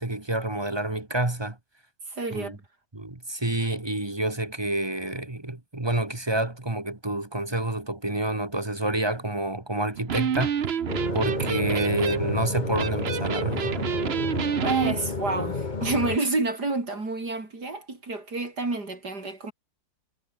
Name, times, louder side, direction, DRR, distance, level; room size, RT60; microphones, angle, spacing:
voice 1, 0.0-1.6 2.3-2.6 2.9-10.5 11.1-13.7, right 1 dB, 15° right, 1.7 m, -28 dB
voice 2, 2.1-2.6 14.6-19.5, right 3 dB, 70° right, 5.7 m, -29 dB
Electric guitar, 10.0-15.0, right 8 dB, 45° right, 0.9 m, -29 dB
sound 1, 10.9-16.2, left 4 dB, 30° left, 1.6 m, -31 dB
omnidirectional pair, 1.8 m